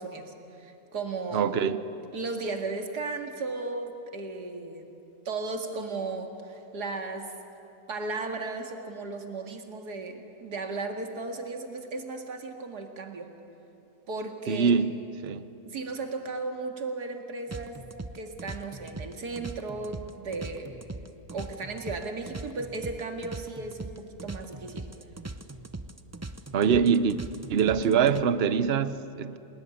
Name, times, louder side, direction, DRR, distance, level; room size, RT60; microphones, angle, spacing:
voice 1, 0.0-1.5 2.1-4.9 5.3-7.3 7.9-13.3 14.1-14.8 15.7-17.8 18.1-20.8 21.3-24.9, right 3 dB, 80° right, 2.6 m, -35 dB
voice 2, 1.3-1.8 14.5-14.9 15.2-15.5 26.5-27.2 27.5-29.4, right 7 dB, 50° right, 0.9 m, -24 dB
sound 1, 17.5-28.2, right 2 dB, 20° right, 0.4 m, -40 dB
27.5 x 19.5 x 10.0 m
omnidirectional pair, 1.7 m